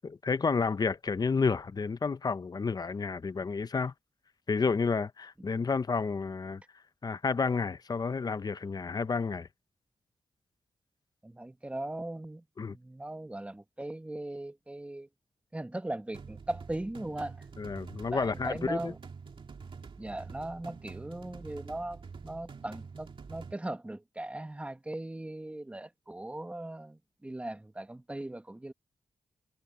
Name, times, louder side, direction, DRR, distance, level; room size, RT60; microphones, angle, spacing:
voice 1, 0.0-3.9 4.5-6.6 7.0-9.5 12.6-12.8 17.6-18.9, left 4 dB, 40° left, 0.7 m, -30 dB
voice 2, 11.2-15.1 15.5-17.4 18.1-19.0 20.0-28.7, right 1 dB, 10° right, 1.0 m, -39 dB
sound 1, 16.1-23.5, right 5 dB, 60° right, 2.5 m, -47 dB
cardioid pair, 85°, 10 cm